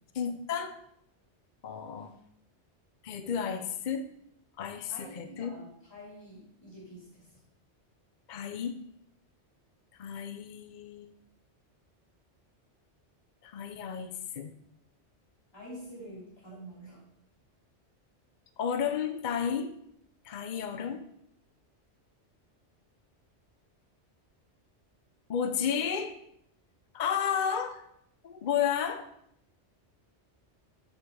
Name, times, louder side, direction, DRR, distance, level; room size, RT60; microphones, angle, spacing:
voice 1, 0.1-0.7 1.6-2.1 3.0-4.1 4.6-5.5 8.3-8.7 10.0-11.1 13.4-14.5 18.6-19.7 20.2-21.0 25.3-26.1 26.9-27.8 28.2-29.1, left 7 dB, 50° left, 8 dB, 0.7 m, -32 dB
voice 2, 4.9-7.3 15.5-17.0, right 1 dB, 20° left, -8 dB, 3.3 m, -47 dB
8.7 x 4.7 x 5.5 m, 0.74 s
omnidirectional pair, 1.2 m